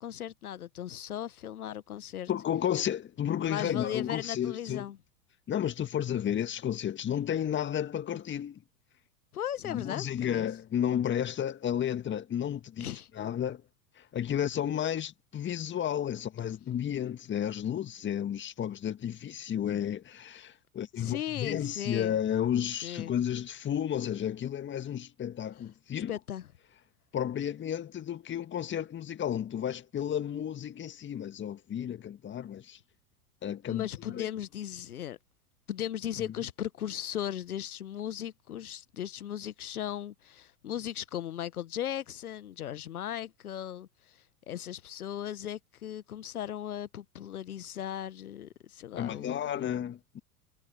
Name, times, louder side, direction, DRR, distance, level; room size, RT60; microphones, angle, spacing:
voice 1, 0.0-2.3 3.4-5.0 9.3-10.5 12.8-13.1 21.0-22.2 22.8-23.1 25.9-26.4 33.7-35.2 35.7-49.7, left 10 dB, 75° left, 1.1 m, -37 dB
voice 2, 2.3-4.9 5.5-8.6 9.6-13.6 14.0-26.1 27.1-32.8 33.4-34.3 49.0-50.2, left 10 dB, 25° left, 2.0 m, -32 dB
figure-of-eight pair, 90°, 44 cm